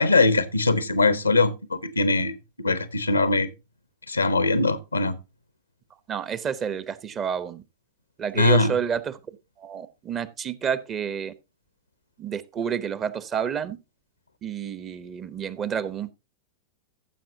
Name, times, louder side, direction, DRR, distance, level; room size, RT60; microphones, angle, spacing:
voice 1, 0.0-3.5 4.1-5.2 8.4-8.7, left 3 dB, 80° left, 0.9 m, -21 dB
voice 2, 6.1-7.6 8.2-9.2 9.6-11.3 12.2-13.8 14.4-16.1, right 7 dB, 25° right, 0.9 m, -29 dB
14.5 x 7.5 x 2.8 m
figure-of-eight pair, 90°, 0 cm